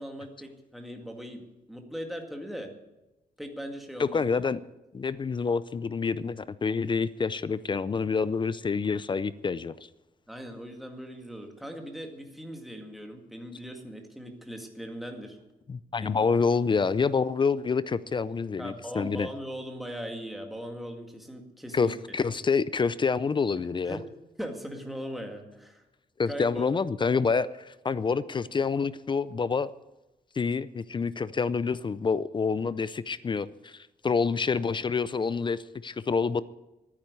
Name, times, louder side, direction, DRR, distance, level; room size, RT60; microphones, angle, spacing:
voice 1, 0.0-2.7 3.4-4.2 10.3-15.4 16.0-16.2 18.6-22.0 23.9-24.0 24.4-25.8 26.3-26.7, equal, ahead, 2.0 m, -39 dB
voice 2, 4.0-4.6 4.9-9.9 15.7-19.3 21.7-24.0 26.2-29.7 30.4-36.4, left 5 dB, 30° left, 0.5 m, -27 dB
12.5 x 9.9 x 9.5 m
wide cardioid pair, 160°, 16 cm